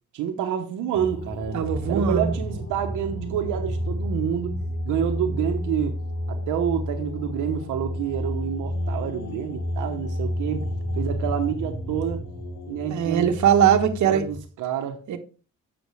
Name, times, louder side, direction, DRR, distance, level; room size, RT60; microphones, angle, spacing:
voice 1, 0.1-1.6 1.9-6.0 6.3-10.7 11.0-12.3 12.7-13.4 14.0-15.0, right 9 dB, 90° right, 0.9 m, -28 dB
sound 1, 0.9-14.4, equal, 65° left, 1.6 m, -30 dB
voice 2, 1.5-2.3 12.9-14.2 15.1-15.2, right 8 dB, 70° right, 1.1 m, -20 dB
8.1 x 6.0 x 3.2 m
cardioid pair, 90°, 30 cm